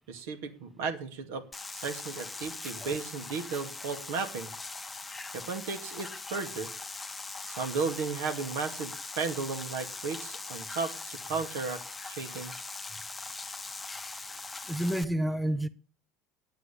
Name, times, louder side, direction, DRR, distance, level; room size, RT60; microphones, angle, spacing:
voice 1, 0.1-1.4 1.7-4.5 5.3-6.7 7.5-12.5, right 5 dB, 75° right, 2.3 m, -35 dB
sound 1, 1.5-15.0, left 3 dB, 15° left, 1.2 m, -41 dB
voice 2, 2.6-3.0 3.5-3.6 14.7-15.7, right 1 dB, 5° right, 0.9 m, -30 dB
10.0 x 8.2 x 8.5 m
hypercardioid pair, 90°, 0 cm